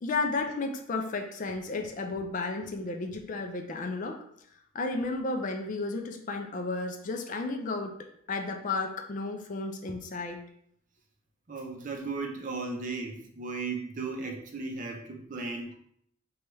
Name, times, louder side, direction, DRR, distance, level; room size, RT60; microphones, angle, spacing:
voice 1, 0.0-4.2 4.7-10.4, left 3 dB, 40° left, 4 dB, 0.3 m, -33 dB
voice 2, 11.5-15.7, right 3 dB, 40° right, 2 dB, 0.5 m, -36 dB
4.5 x 2.3 x 3.0 m, 0.69 s
head